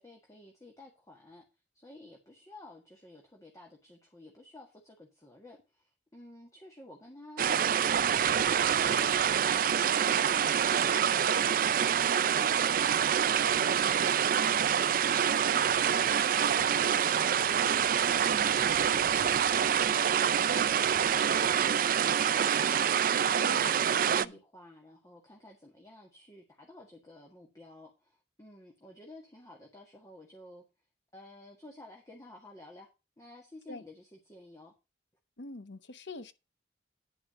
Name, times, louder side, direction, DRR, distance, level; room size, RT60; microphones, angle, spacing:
voice 1, 0.0-1.5 1.7-8.0 8.3-30.7 31.1-32.9 33.2-34.7, left 2 dB, 20° left, 1.7 m, -53 dB
sound 1, 7.4-24.3, right 8 dB, 50° right, 0.4 m, -26 dB
voice 2, 23.2-23.7 24.1-24.4 33.7-33.8 35.4-36.3, left 2 dB, 70° left, 0.9 m, -44 dB
10.5 x 4.9 x 6.2 m
head